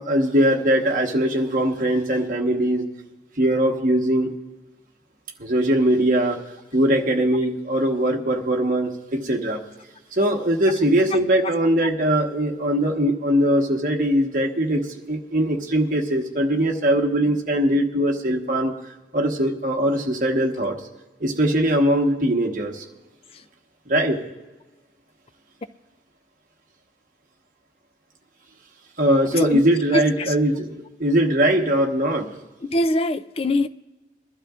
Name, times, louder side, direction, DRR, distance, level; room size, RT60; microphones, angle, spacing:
voice 1, 0.0-2.9 3.4-4.3 5.4-6.4 6.7-9.6 10.1-18.7 19.1-20.8 21.2-22.8 23.9-24.2 29.0-32.3, right 1 dB, 50° right, 1.3 m, -21 dB
voice 2, 29.3-29.6 29.9-30.3 32.6-33.7, left 1 dB, 35° left, 0.4 m, -23 dB
22.0 x 12.0 x 2.5 m
head